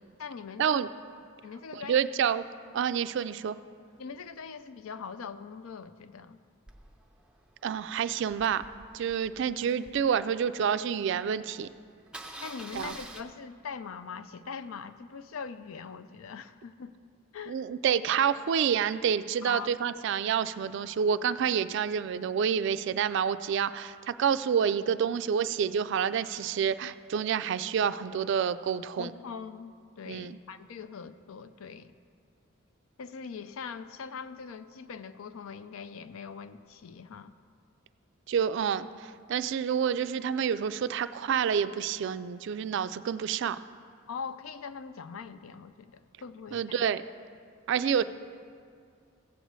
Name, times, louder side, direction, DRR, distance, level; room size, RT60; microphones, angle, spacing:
voice 1, 0.2-0.8 1.4-2.1 4.0-6.4 12.4-16.9 17.3-17.6 19.4-19.7 29.0-31.9 33.0-37.3 44.1-46.8, left 6 dB, 80° left, 12 dB, 0.4 m, -42 dB
voice 2, 1.7-2.4 2.7-3.6 7.6-8.6 8.9-11.7 12.7-12.9 17.5-29.1 30.1-30.4 38.3-43.6 46.5-47.0 47.7-48.0, right 7 dB, 60° right, 13 dB, 0.3 m, -28 dB
Engine starting, 6.7-10.9 11.3-11.4 11.6-11.8 12.1-13.2, right 2 dB, 5° right, 0.5 m, -47 dB
15.5 x 8.0 x 3.1 m, 2.2 s
head